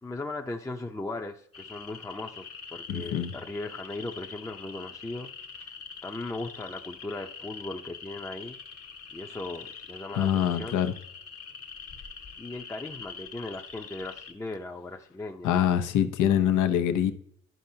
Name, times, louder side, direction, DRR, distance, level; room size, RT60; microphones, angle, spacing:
voice 1, 0.0-5.3 5.5-5.7 6.0-8.6 9.1-10.8 12.4-15.9, left 2 dB, 10° left, 0.6 m, -38 dB
sound 1, 1.5-14.3, left 6 dB, 50° left, 1.3 m, -44 dB
voice 2, 2.9-3.3 10.1-10.9 15.4-17.1, left 10 dB, 80° left, 0.8 m, -24 dB
12.0 x 5.2 x 2.8 m
cardioid pair, 90°, 30 cm